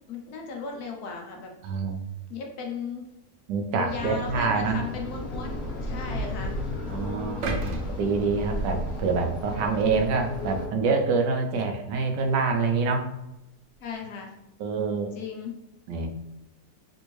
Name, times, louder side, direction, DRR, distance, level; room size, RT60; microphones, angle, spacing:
voice 1, 0.1-1.5 2.3-3.1 3.7-6.5 7.3-7.8 13.8-14.3 15.1-15.5, left 5 dB, 70° left, 1 dB, 1.1 m, -36 dB
voice 2, 1.6-2.0 3.5-4.8 6.9-7.6 8.0-13.1 14.6-15.1 15.9-16.1, right 4 dB, 90° right, 4 dB, 1.2 m, -26 dB
sound 1, 3.9-10.7, left 1 dB, 30° left, 1.5 m, -34 dB
sound 2, 7.4-9.6 10.1-10.2, right 3 dB, 75° right, 0.7 m, -34 dB
3.4 x 2.6 x 3.0 m, 0.90 s
omnidirectional pair, 1.8 m